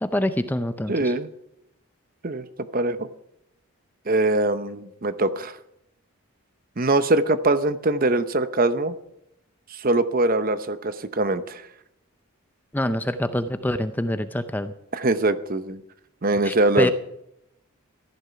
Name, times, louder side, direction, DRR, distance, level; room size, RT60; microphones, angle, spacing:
voice 1, 0.0-1.1 12.7-14.7 16.4-16.9, left 1 dB, 10° left, 10 dB, 0.5 m, -25 dB
voice 2, 0.9-1.3 2.2-2.5 2.7-3.1 4.1-5.6 6.8-8.9 9.7-11.7 14.9-15.8 16.2-16.9, right 2 dB, 40° right, 12 dB, 0.8 m, -22 dB
15.0 x 11.5 x 5.8 m, 0.82 s
head